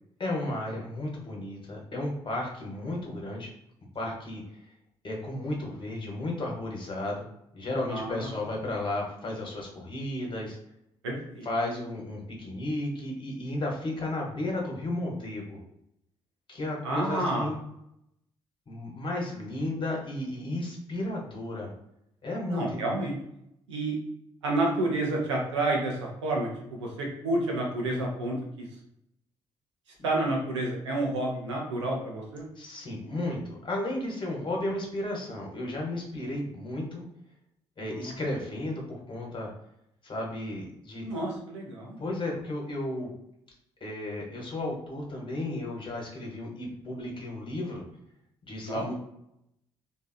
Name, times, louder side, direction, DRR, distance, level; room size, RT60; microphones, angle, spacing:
voice 1, 0.2-3.5 3.9-4.4 5.0-7.3 7.5-10.6 11.4-15.6 16.5-17.6 18.7-21.7 22.2-22.8 32.6-37.1 37.8-39.5 40.0-41.1 42.0-43.1 43.8-47.8 48.4-48.9, left 1 dB, 35° left, -1 dB, 0.9 m, -33 dB
voice 2, 7.9-8.3 11.0-11.5 16.8-17.5 22.5-23.1 23.7-24.0 24.4-28.7 30.0-32.5 37.9-38.2 41.0-42.0 48.6-48.9, right 2 dB, 85° right, -1 dB, 0.5 m, -30 dB
2.8 x 2.4 x 2.2 m, 0.77 s
figure-of-eight pair, 40°, 15 cm